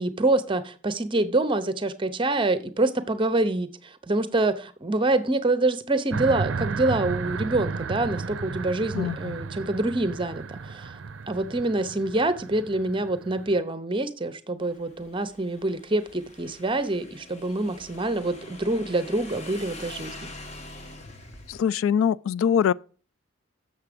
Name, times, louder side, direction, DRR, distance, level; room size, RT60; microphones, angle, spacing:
voice 1, 0.0-11.0 11.3-20.3, right 2 dB, 25° right, 0.7 m, -26 dB
sound 1, 6.1-13.6, right 4 dB, 65° right, 0.5 m, -33 dB
voice 2, 8.9-9.4 21.5-22.7, left 8 dB, 80° left, 0.3 m, -23 dB
Motorcycle / Engine, 14.6-21.6, left 2 dB, 35° left, 1.0 m, -44 dB
7.3 x 6.7 x 5.1 m
head